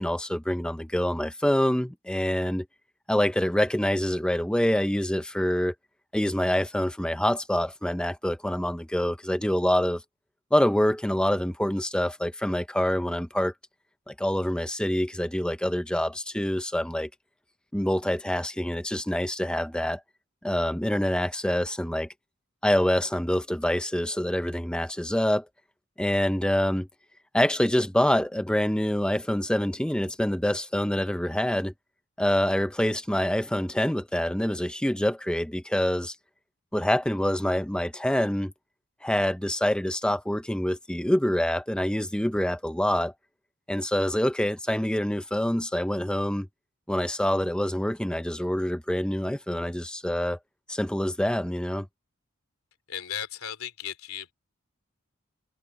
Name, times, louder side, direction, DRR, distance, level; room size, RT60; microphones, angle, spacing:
voice 1, 0.0-2.7 3.1-5.7 6.1-10.0 10.5-13.5 14.1-17.1 17.7-20.0 20.4-22.1 22.6-25.4 26.0-26.9 27.3-31.7 32.2-36.2 36.7-38.5 39.0-43.1 43.7-46.5 46.9-50.4 50.7-51.9, equal, 5° left, 0.7 m, -26 dB
voice 2, 52.9-54.3, left 9 dB, 85° left, 2.9 m, -36 dB
head